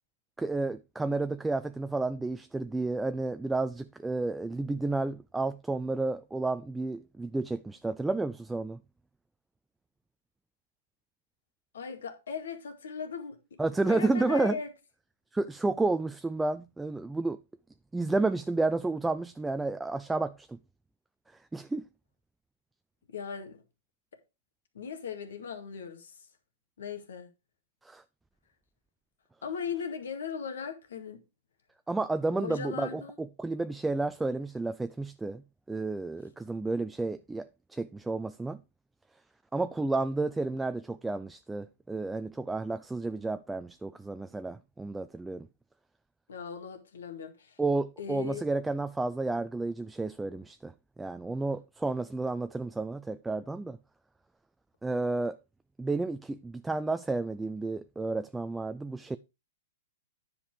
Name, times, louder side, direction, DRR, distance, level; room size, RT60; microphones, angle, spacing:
voice 1, 0.4-8.8 13.6-14.6 15.3-17.4 17.9-20.6 21.5-21.8 27.8-28.0 31.9-35.4 35.7-38.6 39.5-45.5 47.6-50.7 51.0-53.8 54.8-55.4 55.8-59.2, right 3 dB, 5° right, 0.4 m, -31 dB
voice 2, 11.7-13.6 13.9-14.7 23.1-23.6 24.7-26.2 26.8-27.3 29.4-31.2 32.4-33.2 46.3-47.6 48.0-48.4, left 6 dB, 80° left, 2.0 m, -38 dB
9.9 x 5.3 x 4.8 m
hypercardioid pair, 130°, 0 cm